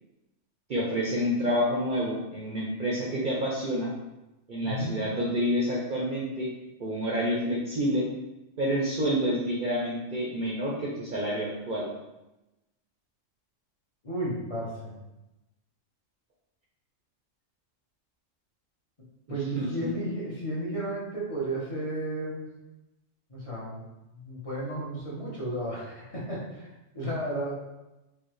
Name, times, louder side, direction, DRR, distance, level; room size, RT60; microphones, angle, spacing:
voice 1, 0.7-3.9 4.5-6.5 6.8-8.0 8.6-11.8 19.5-19.7, equal, 50° right, -4 dB, 0.7 m, -28 dB
voice 2, 4.6-5.0 14.0-15.0 19.3-22.5 23.3-23.8 24.1-27.5, right 1 dB, 30° left, -7 dB, 0.9 m, -33 dB
4.7 x 2.4 x 3.1 m, 0.98 s
omnidirectional pair, 1.3 m